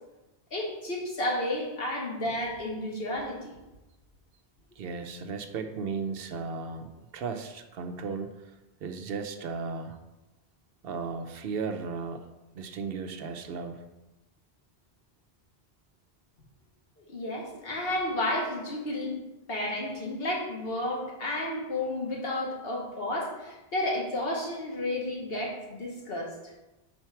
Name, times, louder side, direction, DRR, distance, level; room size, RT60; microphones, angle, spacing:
voice 1, 0.5-3.5 17.1-19.2 19.5-26.5, left 1 dB, 65° left, -2 dB, 1.5 m, -32 dB
voice 2, 4.8-8.3 8.8-10.0 10.8-12.2 12.5-13.8, right 5 dB, 70° right, 6 dB, 0.8 m, -35 dB
4.5 x 4.3 x 5.7 m, 1.0 s
omnidirectional pair, 1.0 m